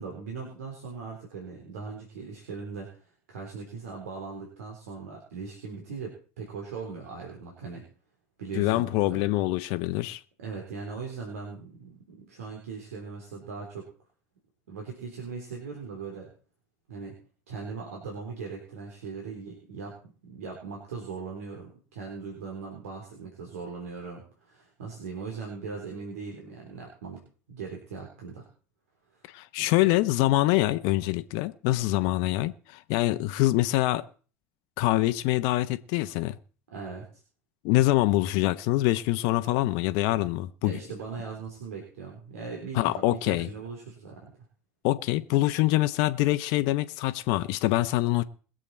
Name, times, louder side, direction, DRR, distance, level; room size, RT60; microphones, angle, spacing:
voice 1, 0.0-2.9 3.3-7.8 8.4-9.2 10.4-13.9 14.7-16.3 16.9-17.2 17.5-27.2 27.5-28.5 29.1-29.2 29.6-29.7 36.7-37.0 40.6-44.3, right 5 dB, 75° right, 3.7 m, -39 dB
voice 2, 8.5-10.2 29.3-34.0 34.8-36.4 37.6-40.8 42.7-43.5 44.8-48.2, left 17 dB, 60° left, 0.8 m, -25 dB
22.0 x 7.7 x 4.3 m
hypercardioid pair, 80°, 8 cm